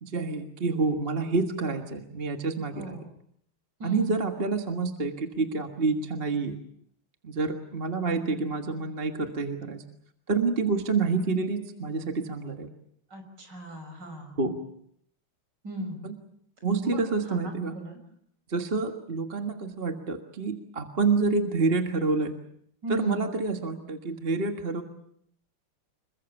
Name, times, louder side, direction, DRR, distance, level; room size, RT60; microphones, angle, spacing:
voice 1, 0.0-3.0 3.8-6.6 7.2-9.8 10.3-12.7 14.4-14.6 16.0-16.1 16.6-17.8 18.5-22.3 22.9-24.8, right 4 dB, 30° right, 5 dB, 1.7 m, -28 dB
voice 2, 2.7-3.1 3.8-4.1 13.1-14.4 15.6-16.1 16.8-17.0 17.3-18.0 22.8-23.3, right 1 dB, 55° right, 5 dB, 6.7 m, -36 dB
27.0 x 22.5 x 7.2 m, 0.69 s
omnidirectional pair, 2.3 m